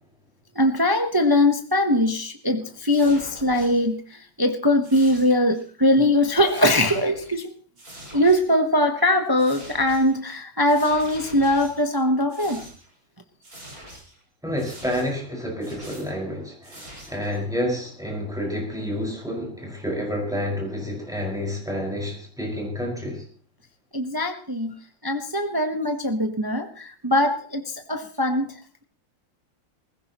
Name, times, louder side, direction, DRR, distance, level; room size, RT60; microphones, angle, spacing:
voice 1, 0.5-7.5 8.1-12.6 23.9-24.7 25.0-28.5, left 1 dB, 25° right, 5 dB, 0.4 m, -21 dB
sound 1, 2.9-3.8 4.8-5.7 6.0-7.5 7.8-8.5 9.4-10.2 10.7-12.0 12.3-13.0 13.4-14.2 14.6-15.2 15.6-16.2 16.6-17.4, right 1 dB, 45° right, 5.4 m, -44 dB
voice 2, 14.4-23.2, equal, ahead, -1 dB, 5.0 m, -29 dB
20.0 x 15.5 x 3.0 m, 0.42 s
omnidirectional pair, 2.1 m